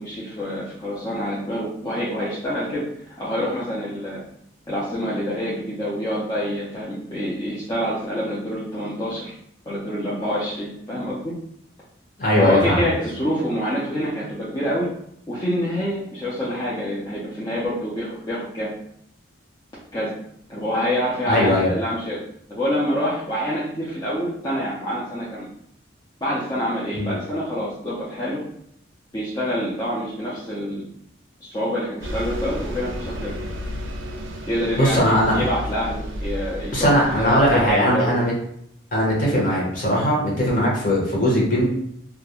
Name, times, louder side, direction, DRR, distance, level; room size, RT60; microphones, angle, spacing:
voice 1, 0.0-4.2 4.7-9.3 9.7-11.3 12.3-14.9 15.3-18.7 19.9-20.1 20.5-22.2 22.5-25.5 26.2-28.4 29.1-30.8 31.4-33.4 34.4-38.2, equal, 20° left, -8 dB, 0.4 m, -26 dB
voice 2, 12.2-12.9 21.3-21.7 26.9-27.1 34.8-35.4 36.7-38.3 38.9-41.7, equal, 40° left, -4 dB, 0.8 m, -19 dB
Bus, 32.0-37.8, equal, 70° right, 0.4 m, -32 dB
2.3 x 2.1 x 2.8 m, 0.71 s
head